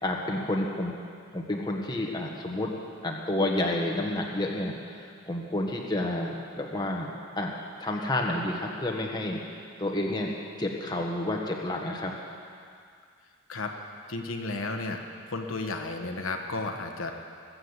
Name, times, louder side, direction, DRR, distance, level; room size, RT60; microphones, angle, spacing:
voice 1, 0.0-0.9 1.3-2.7 3.0-7.1 7.4-7.5 7.8-9.4 9.8-10.3 10.6-12.1, left 1 dB, 20° left, -1 dB, 1.3 m, -30 dB
voice 2, 14.1-15.0 15.3-17.1, left 3 dB, 70° left, 4 dB, 1.2 m, -33 dB
20.5 x 7.8 x 8.1 m, 2.2 s
head